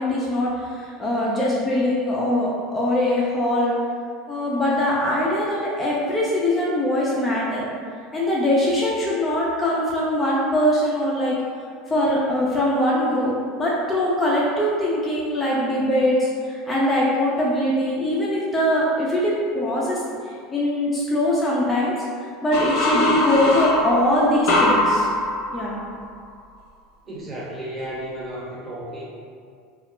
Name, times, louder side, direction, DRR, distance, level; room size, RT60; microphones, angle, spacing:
voice 1, 0.0-3.8 4.3-7.7 8.1-11.4 11.9-20.0 20.5-21.9 22.2-25.1 25.5-25.8, left 1 dB, 15° left, -6 dB, 0.5 m, -22 dB
sound 1, 22.5-26.1, left 2 dB, 65° left, 0.5 m, -22 dB
voice 2, 27.1-29.0, right 1 dB, 30° right, -7 dB, 0.9 m, -33 dB
2.4 x 2.0 x 3.0 m, 2.1 s
hypercardioid pair, 85°, 0 cm